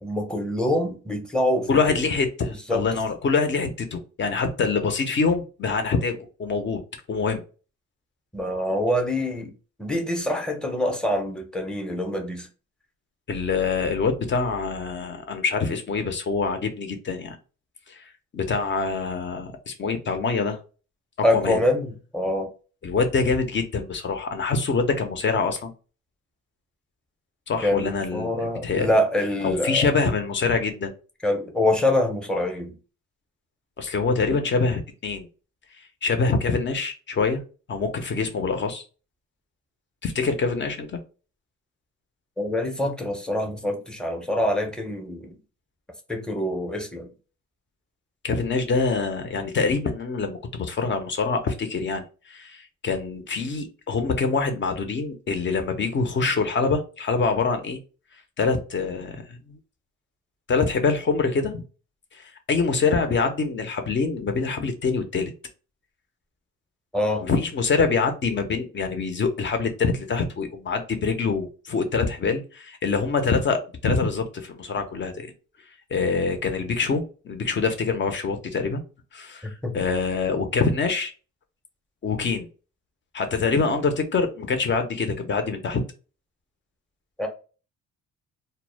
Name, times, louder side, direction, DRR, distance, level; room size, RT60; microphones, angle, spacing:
voice 1, 0.0-2.0 2.5-3.0 8.3-9.5 9.8-12.5 21.2-22.5 27.6-29.9 31.2-32.8 42.4-45.3 46.1-47.1 66.9-67.2 79.4-79.8 87.2-87.3, left 1 dB, 5° left, 0.7 m, -25 dB
voice 2, 1.7-6.8 7.1-7.4 13.3-17.4 17.9-18.0 18.3-20.6 21.3-21.6 22.8-25.7 27.5-29.0 29.4-30.9 33.8-35.3 35.8-37.4 37.7-38.8 40.0-41.0 48.2-57.8 58.4-59.6 60.5-61.6 62.1-65.3 67.2-75.3 75.9-78.8 79.1-79.5 79.7-81.1 82.0-82.5 83.1-85.8, left 4 dB, 40° left, 0.6 m, -25 dB
2.1 x 2.0 x 3.2 m
cardioid pair, 90°, 30 cm